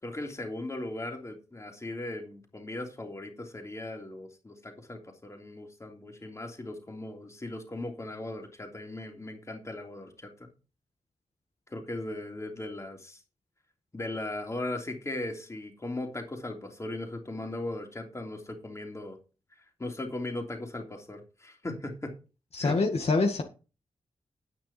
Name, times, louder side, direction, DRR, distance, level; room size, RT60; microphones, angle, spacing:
voice 1, 0.0-10.5 11.7-13.2 13.9-19.2 19.8-22.2 22.6-22.8, left 2 dB, 25° left, 2 dB, 3.2 m, -38 dB
voice 2, 22.5-23.4, left 3 dB, 60° left, 2 dB, 1.8 m, -25 dB
9.7 x 9.3 x 4.3 m, 0.33 s
wide cardioid pair, 100°, 12 cm